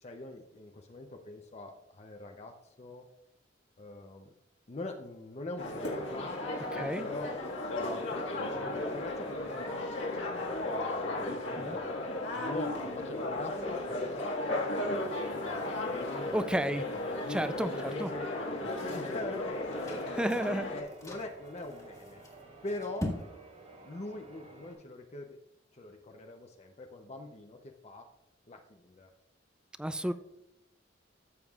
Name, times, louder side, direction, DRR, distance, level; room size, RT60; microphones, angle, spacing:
voice 1, 0.0-3.0 3.8-4.3 4.7-6.4 6.7-7.3 7.7-9.9 10.5-11.1 11.5-11.7 12.3-14.3 14.8-16.8 17.1-20.1 20.7-22.2 22.6-23.1 23.8-25.4 25.7-28.1 28.5-29.1 29.8-30.1, left 2 dB, 35° left, 3 dB, 0.6 m, -44 dB
sound 1, 5.6-20.8, left 2 dB, 85° left, 1.7 m, -35 dB
voice 2, 16.3-16.8 17.3-17.7 18.0-18.1 20.2-20.7 29.8-30.1, right 1 dB, 5° right, 12 dB, 0.3 m, -31 dB
Church bell, 17.4-24.7, right 3 dB, 45° right, 2.9 m, -54 dB
sound 2, 19.7-23.2, left 1 dB, 20° left, 1.6 m, -49 dB
14.0 x 7.1 x 2.4 m, 0.83 s
head